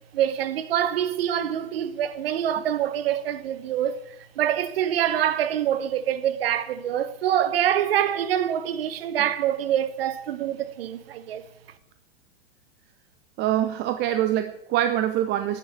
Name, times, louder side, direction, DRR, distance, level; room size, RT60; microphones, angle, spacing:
voice 1, 0.1-4.0 4.4-11.4, right 10 dB, 60° right, 1.3 m, -25 dB
voice 2, 13.4-15.6, right 12 dB, 30° right, 0.8 m, -24 dB
12.5 x 8.7 x 7.3 m
figure-of-eight pair, 95°, 33 cm